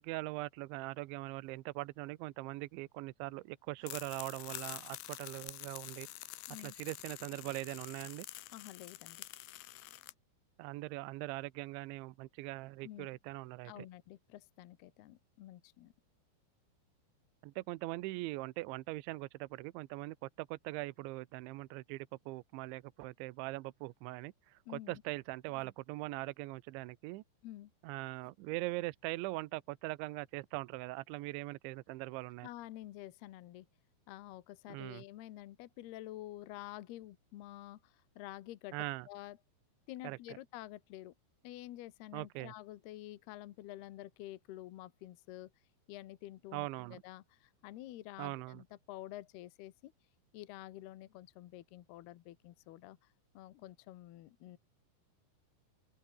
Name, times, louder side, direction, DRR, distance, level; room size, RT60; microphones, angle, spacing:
voice 1, 0.0-6.1 6.6-8.3 10.6-13.9 17.4-27.2 27.8-32.5 34.7-35.0 38.7-39.1 40.0-40.4 42.1-42.5 46.5-47.0 48.2-48.6, right 20 dB, 80° right, 2.9 m, -41 dB
sound 1, 3.8-10.1, left 17 dB, 85° left, 2.3 m, -47 dB
voice 2, 8.5-9.2 12.8-13.1 13.6-15.9 24.7-25.0 27.4-27.7 32.4-33.7 34.1-38.8 39.1-39.4 39.9-41.1 41.4-45.5 45.9-49.9 50.3-53.0 53.3-54.6, left 15 dB, 70° left, 2.6 m, -49 dB
open air
omnidirectional pair, 6.0 m